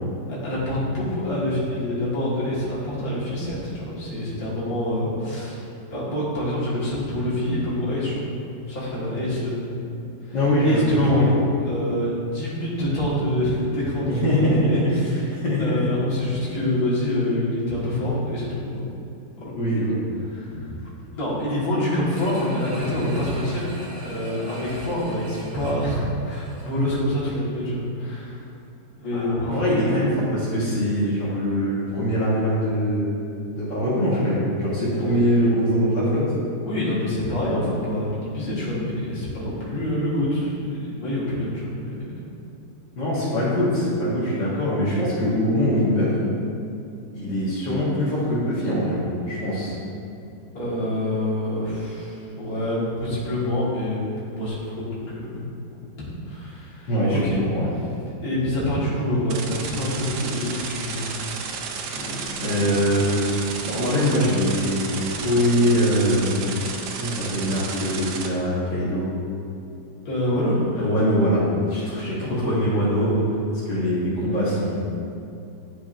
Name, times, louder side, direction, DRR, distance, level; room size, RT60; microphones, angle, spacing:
voice 1, 0.3-8.3 8.7-9.8 10.2-11.3 11.6-15.2 15.6-18.9 19.4-19.5 20.3-20.7 21.1-23.7 24.0-28.5 29.0-29.6 36.6-42.3 50.5-55.5 55.7-55.8 56.3-57.4 58.2-61.3 61.9-62.6 70.0-70.8, left 1 dB, 55° left, -8 dB, 2.1 m, -26 dB
voice 2, 10.3-11.3 14.0-14.6 15.3-15.6 19.6-20.0 29.1-36.3 43.0-46.1 47.1-49.7 56.9-57.7 62.4-63.2 63.6-66.6 67.0-69.0 70.8-73.1 73.7-74.8, equal, 70° left, -10 dB, 2.0 m, -22 dB
sound 1, 22.1-26.9 27.3-27.4, right 1 dB, 90° right, 2.1 m, -40 dB
sound 2, 59.3-68.3, right 5 dB, 70° right, 1.1 m, -32 dB
10.5 x 4.7 x 2.5 m, 2.5 s
omnidirectional pair, 2.0 m